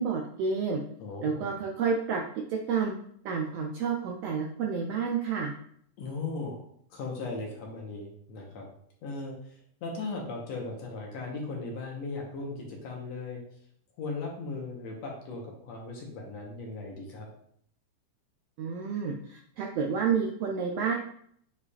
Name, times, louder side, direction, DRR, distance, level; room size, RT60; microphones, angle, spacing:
voice 1, 0.0-0.8 1.2-2.2 2.5-2.9 3.2-5.5 18.6-20.9, right 6 dB, 85° right, 1 dB, 1.4 m, -29 dB
voice 2, 1.0-1.5 6.0-8.7 9.0-13.4 14.0-17.3, left 3 dB, 65° left, -1 dB, 2.1 m, -38 dB
8.3 x 4.8 x 2.4 m, 0.66 s
omnidirectional pair, 3.5 m